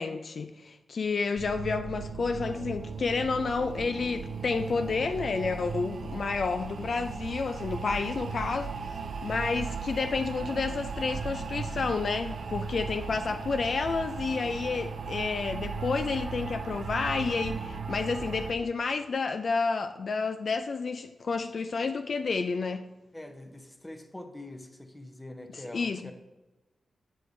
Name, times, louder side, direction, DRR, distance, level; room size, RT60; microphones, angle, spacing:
voice 1, 0.0-22.8 25.7-26.1, left 4 dB, 55° left, 8 dB, 0.3 m, -30 dB
sound 1, 1.4-18.5, right 5 dB, 65° right, 0.5 m, -37 dB
voice 2, 23.1-26.1, left 1 dB, 10° left, 7 dB, 0.7 m, -44 dB
8.2 x 7.7 x 2.6 m, 1.1 s
wide cardioid pair, 115°, 0 cm